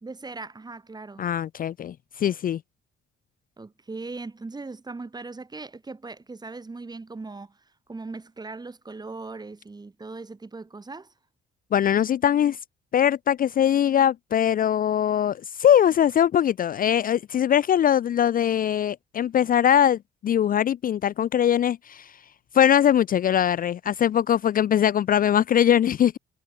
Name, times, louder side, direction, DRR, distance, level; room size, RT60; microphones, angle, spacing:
voice 1, 0.0-1.3 3.6-7.6 7.9-11.1, right 3 dB, 20° right, 1.5 m, -39 dB
voice 2, 1.2-2.6 11.7-12.6 12.9-22.1 22.5-26.2, left 10 dB, 45° left, 0.4 m, -21 dB
cardioid pair, 90°, 20 cm